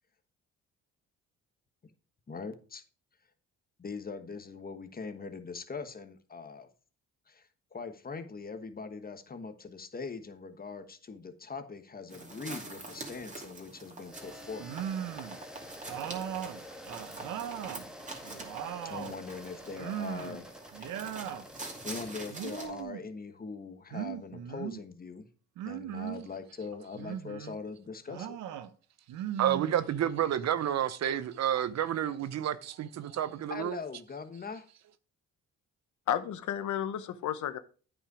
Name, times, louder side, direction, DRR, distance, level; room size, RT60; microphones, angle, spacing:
voice 1, 2.3-2.8 3.8-6.7 7.3-14.7 18.8-20.5 20.7-21.1 21.8-25.3 25.6-28.4 33.5-34.7, left 4 dB, 30° left, 1.2 m, -42 dB
sound 1, 12.1-22.7, right 2 dB, 25° right, 2.6 m, -46 dB
sound 2, 14.0-22.8, left 1 dB, ahead, 1.4 m, -49 dB
sound 3, 14.6-15.4 15.9-17.8 18.2-19.2 19.8-20.4 20.7-21.5 22.3-23.1 23.9-24.8 25.6-26.3 26.9-27.6 28.1-28.7 29.1-30.2, right 10 dB, 90° right, 0.8 m, -38 dB
voice 2, 29.4-33.8, right 10 dB, 60° right, 0.8 m, -30 dB
voice 3, 36.1-37.6, left 10 dB, 75° left, 0.9 m, -32 dB
8.9 x 5.4 x 4.8 m
cardioid pair, 90°, 30 cm